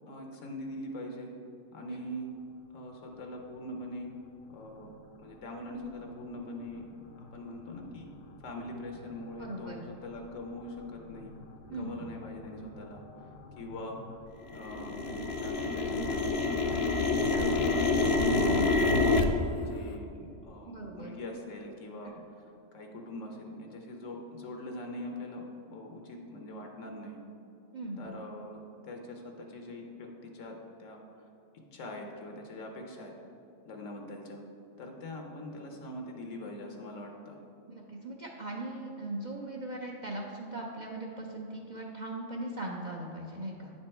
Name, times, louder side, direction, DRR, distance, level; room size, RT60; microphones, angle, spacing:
voice 1, 0.1-1.3 1.7-2.3 2.7-4.1 4.5-4.9 5.2-6.9 7.2-8.1 8.4-11.3 11.7-14.0 14.5-16.4 16.9-19.2 19.6-22.1 22.7-25.4 25.7-27.2 28.0-31.2 31.7-33.1 33.6-34.4 34.8-37.4, left 1 dB, 85° left, 2 dB, 1.2 m, -42 dB
sound 1, 8.4-8.5 9.1-9.2 9.9-10.2 10.6-10.7 11.0-11.5 11.8-14.1 14.4-19.2, left 3 dB, 65° left, 0.7 m, -28 dB
voice 2, 9.4-9.9 11.7-11.9 20.6-21.1 22.0-22.1 27.7-28.1 37.7-43.7, right 1 dB, 50° right, -2 dB, 0.6 m, -39 dB
9.1 x 4.4 x 4.3 m, 2.7 s
omnidirectional pair, 1.3 m